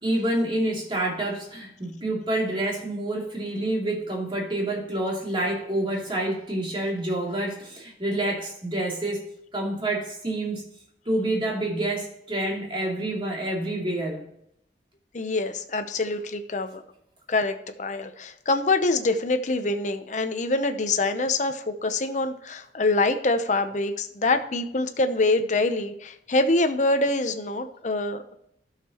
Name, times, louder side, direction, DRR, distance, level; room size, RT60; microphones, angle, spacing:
voice 1, 0.0-9.2 9.5-10.6 11.1-14.3, right 1 dB, 30° right, -2 dB, 2.7 m, -28 dB
voice 2, 15.1-16.8 17.3-28.4, left 2 dB, 45° left, 8 dB, 0.8 m, -25 dB
12.5 x 6.7 x 3.0 m, 0.75 s
head